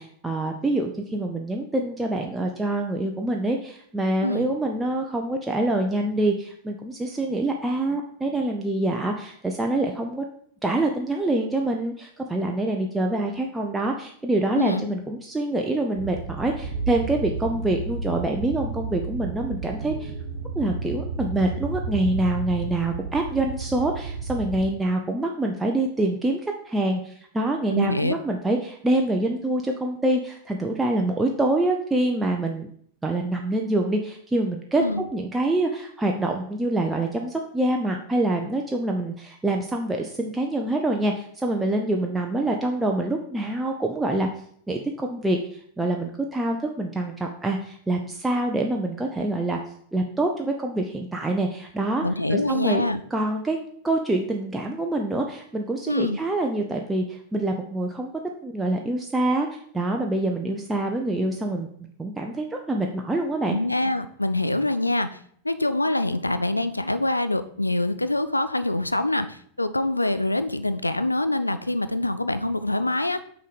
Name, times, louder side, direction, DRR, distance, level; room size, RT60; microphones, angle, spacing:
voice 1, 0.0-10.2 10.6-20.1 20.6-32.7 33.0-34.8 35.1-44.3 44.7-49.6 49.9-52.0 52.3-52.8 53.1-53.6 53.8-58.1 58.4-63.6, right 2 dB, 10° right, 1 dB, 0.6 m, -26 dB
voice 2, 14.5-14.9 27.7-28.1 34.8-35.0 52.0-53.0 55.9-56.2 63.4-73.2, left 2 dB, 85° left, 12 dB, 0.3 m, -25 dB
sound 1, 15.9-24.7, right 3 dB, 65° right, 1.1 m, -32 dB
6.3 x 4.0 x 5.1 m, 0.63 s
figure-of-eight pair, 90°, 0 cm